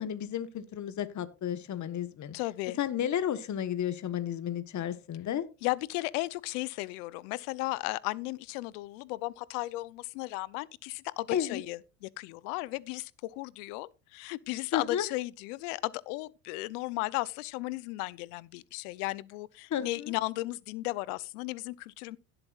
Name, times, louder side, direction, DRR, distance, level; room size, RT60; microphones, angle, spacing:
voice 1, 0.0-2.3 2.8-5.5 11.3-11.6 14.7-15.1 19.7-20.1, left 10 dB, 40° left, 1.3 m, -32 dB
voice 2, 2.3-2.8 5.6-22.2, left 20 dB, 75° left, 0.8 m, -35 dB
17.0 x 7.8 x 2.5 m
supercardioid pair, 85°, 45 cm